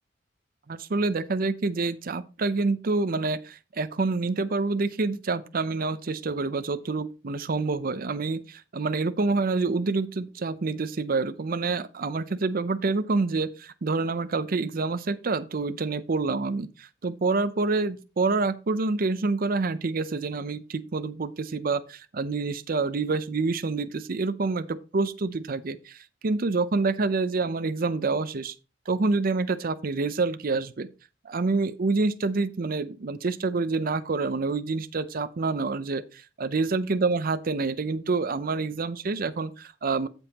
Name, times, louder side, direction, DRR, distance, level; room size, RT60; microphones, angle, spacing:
voice 1, 0.7-16.7 17.0-28.5 28.9-30.9 31.2-40.1, right 3 dB, 50° right, 0.6 m, -27 dB
15.0 x 5.3 x 2.9 m
head